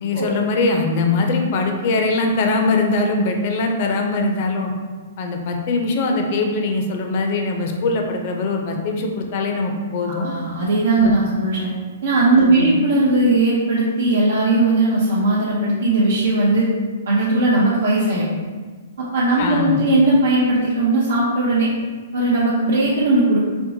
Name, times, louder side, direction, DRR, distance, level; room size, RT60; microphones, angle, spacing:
voice 1, 0.0-4.7 5.2-10.3 11.0-11.1 12.4-12.7 19.4-19.8, left 3 dB, 50° left, 3 dB, 0.5 m, -21 dB
voice 2, 10.1-11.7 12.0-16.7 17.1-18.3 19.0-21.7 22.1-23.5, right 2 dB, 80° right, -7 dB, 0.6 m, -18 dB
4.3 x 2.1 x 2.7 m, 1.4 s
hypercardioid pair, 145°, 0 cm